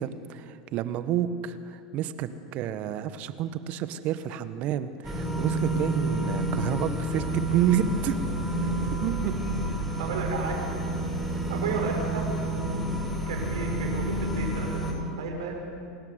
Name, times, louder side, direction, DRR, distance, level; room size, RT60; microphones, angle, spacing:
voice 1, 0.0-8.2 8.6-9.6, right 10 dB, 50° right, 11 dB, 1.4 m, -30 dB
sound 1, 5.0-14.9, right 1 dB, ahead, 7.0 m, -29 dB
voice 2, 10.0-10.6 11.5-12.2 13.3-15.6, right 4 dB, 75° right, 1 dB, 6.6 m, -33 dB
27.5 x 13.5 x 9.7 m, 2.4 s
hypercardioid pair, 95°, 3 cm